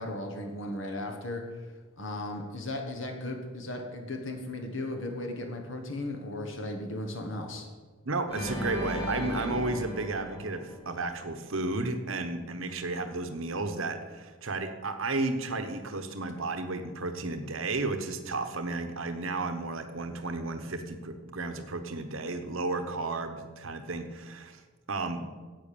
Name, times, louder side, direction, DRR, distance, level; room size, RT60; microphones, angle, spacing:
voice 1, 0.0-1.4 2.0-7.7, left 1 dB, 60° left, 3 dB, 1.4 m, -36 dB
voice 2, 8.1-24.6 24.9-25.3, right 3 dB, 65° right, 7 dB, 1.0 m, -33 dB
Organ, 8.3-11.4, left 1 dB, 25° left, 3.4 m, -36 dB
10.5 x 8.0 x 6.8 m, 1.4 s
head